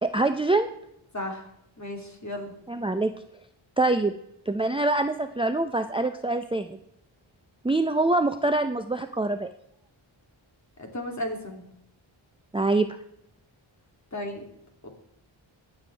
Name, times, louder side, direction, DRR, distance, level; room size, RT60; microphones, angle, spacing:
voice 1, 0.0-0.7 2.7-3.1 3.8-4.1 4.5-6.8 7.6-9.5 12.5-12.9, right 2 dB, 10° right, 8 dB, 0.6 m, -24 dB
voice 2, 1.1-1.5 1.8-2.5 10.8-11.7 14.1-14.4 14.8-14.9, left 1 dB, 35° left, 2 dB, 2.8 m, -34 dB
21.0 x 7.1 x 3.4 m, 0.76 s
cardioid pair, 55°, 48 cm